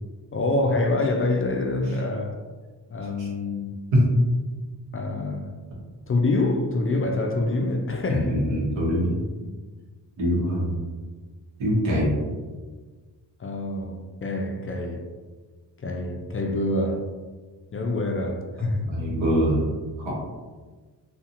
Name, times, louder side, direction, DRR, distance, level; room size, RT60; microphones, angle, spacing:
voice 1, 0.3-2.4 2.9-3.8 4.9-5.5 6.1-8.4 9.4-9.5 13.4-15.0 15.8-17.0 17.7-18.9, left 2 dB, 30° left, 3 dB, 0.4 m, -26 dB
voice 2, 8.1-9.2 10.2-10.8 11.6-12.2 18.9-20.1, equal, 85° right, -5 dB, 1.0 m, -23 dB
2.7 x 2.4 x 2.5 m, 1.4 s
supercardioid pair, 50°, 44 cm